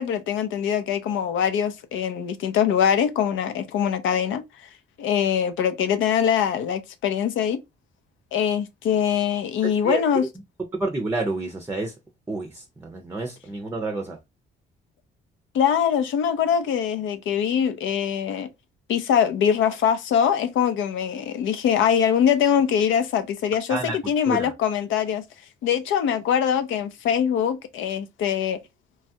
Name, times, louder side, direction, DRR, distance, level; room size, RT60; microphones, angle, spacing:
voice 1, 0.0-4.4 5.0-7.6 8.3-10.2 15.5-18.5 18.9-25.2 25.6-28.6, left 8 dB, 80° left, 0.6 m, -23 dB
voice 2, 9.6-10.3 10.7-11.9 12.3-14.2 23.7-24.0 24.3-24.5, right 2 dB, 10° right, 0.5 m, -29 dB
3.1 x 2.3 x 2.7 m
cardioid pair, 90°, 20 cm